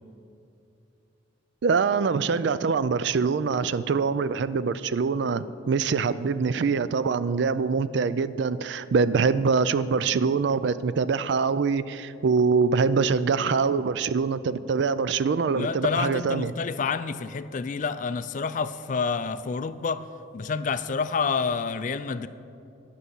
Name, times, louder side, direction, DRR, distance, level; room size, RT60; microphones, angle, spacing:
voice 1, 1.6-16.5, right 5 dB, 60° right, 15 dB, 0.4 m, -24 dB
voice 2, 15.6-20.1 20.3-22.3, left 5 dB, 40° left, 13 dB, 0.3 m, -28 dB
11.5 x 5.5 x 8.1 m, 2.7 s
head